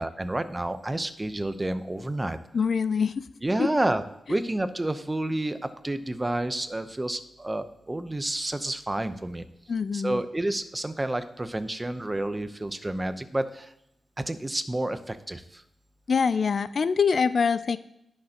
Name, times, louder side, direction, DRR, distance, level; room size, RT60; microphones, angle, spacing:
voice 1, 0.0-2.4 3.4-4.0 4.3-5.6 5.8-9.5 9.9-13.7 14.2-15.6, right 1 dB, 15° right, 10 dB, 0.7 m, -29 dB
voice 2, 2.5-3.3 3.6-3.7 9.7-10.2 16.1-17.8, left 5 dB, 55° left, 14 dB, 0.4 m, -24 dB
18.5 x 6.6 x 2.9 m, 0.84 s
wide cardioid pair, 105°, 0 cm